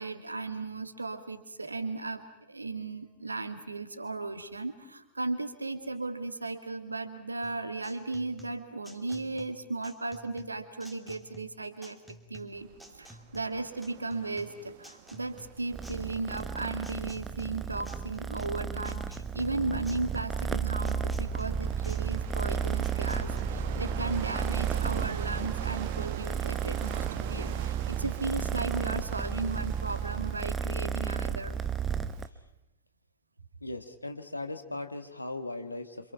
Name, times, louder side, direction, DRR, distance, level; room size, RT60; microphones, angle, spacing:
voice 1, 0.0-2.2 2.5-12.0 12.3-31.6, right 3 dB, 80° right, 9 dB, 2.1 m, -36 dB
sound 1, 7.4-23.4, equal, ahead, 2.7 m, -52 dB
sound 2, 12.5-32.3, right 11 dB, 50° right, 1.7 m, -45 dB
Purr, 15.7-32.3, right 7 dB, 15° right, 1.1 m, -33 dB
voice 2, 33.6-36.1, left 2 dB, 85° left, 8 dB, 1.9 m, -38 dB
28.0 x 26.5 x 5.8 m, 0.91 s
figure-of-eight pair, 90°, 0 cm